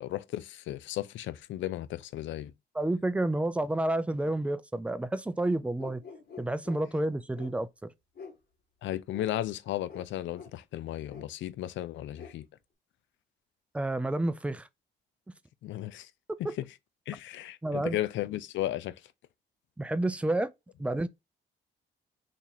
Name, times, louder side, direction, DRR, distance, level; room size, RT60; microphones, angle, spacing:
voice 1, 0.0-2.5 8.8-12.5 15.6-16.1 16.4-16.6 17.1-19.0, left 13 dB, 70° left, 0.4 m, -35 dB
voice 2, 2.7-6.0 6.4-7.9 13.7-14.7 16.3-16.5 17.6-18.0 19.8-20.5 20.8-21.1, right 1 dB, 5° right, 0.3 m, -30 dB
sound 1, 5.8-6.8 7.3-7.5 8.1-8.4 9.1-9.3 9.9-10.1 10.3-10.5 11.1-11.2 12.1-12.3, left 5 dB, 50° left, 1.4 m, -46 dB
2.8 x 2.5 x 3.9 m
cardioid pair, 90°, 20 cm